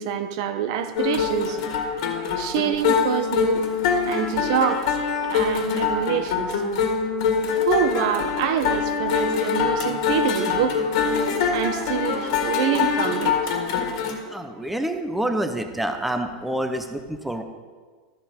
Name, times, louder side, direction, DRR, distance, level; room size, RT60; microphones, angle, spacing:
voice 1, 0.0-1.6 2.4-3.6 4.0-5.0 5.2-6.5 7.7-10.8 11.5-13.4, right 9 dB, 50° right, 9 dB, 1.0 m, -26 dB
sound 1, 1.0-14.2, left 6 dB, 60° left, 1.8 m, -24 dB
voice 2, 14.3-17.4, right 1 dB, 5° right, 7 dB, 0.7 m, -27 dB
13.0 x 7.4 x 5.2 m, 1.5 s
supercardioid pair, 165°, 4 cm